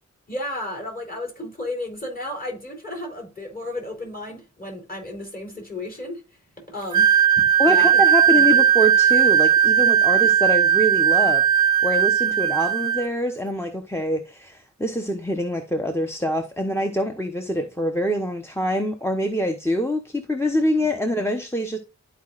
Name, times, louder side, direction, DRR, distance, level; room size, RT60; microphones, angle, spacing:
voice 1, 0.3-6.2 6.7-8.0 8.3-8.6 10.1-10.2, left 1 dB, 30° left, 3.3 m, -33 dB
Wind instrument woodwind instrument, 6.9-13.1, right 9 dB, 80° right, 0.5 m, -17 dB
voice 2, 7.6-21.8, equal, 10° left, 0.9 m, -25 dB
12.5 x 4.8 x 2.4 m
wide cardioid pair, 60°, 29 cm